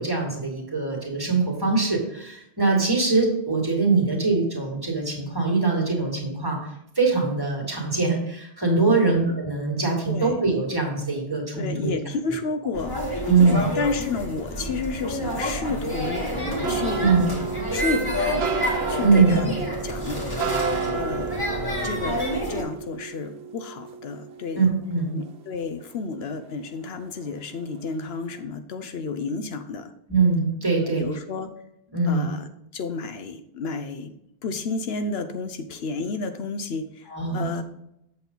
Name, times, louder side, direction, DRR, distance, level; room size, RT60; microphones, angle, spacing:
voice 1, 0.0-6.6 7.0-11.9 12.9-13.7 17.0-17.2 19.0-19.5 24.6-25.2 30.1-31.0 31.9-32.3 37.1-37.5, right 4 dB, 20° right, 0 dB, 2.2 m, -22 dB
voice 2, 8.9-9.4 10.1-10.4 11.5-16.3 16.7-17.2 17.7-18.6 18.9-20.2 20.9-21.3 21.8-22.2 22.5-24.7 25.1-29.9 30.8-31.5 32.1-32.5 32.7-34.1 34.4-37.6, left 4 dB, 75° left, 8 dB, 1.0 m, -31 dB
sound 1, 12.7-22.6, equal, 20° left, 2.2 m, -28 dB
sound 2, 16.6-25.9 26.2-27.3 27.6-28.0 28.3-28.4, right 6 dB, 90° right, 1.0 m, -32 dB
8.1 x 6.6 x 3.9 m, 0.79 s
omnidirectional pair, 1.1 m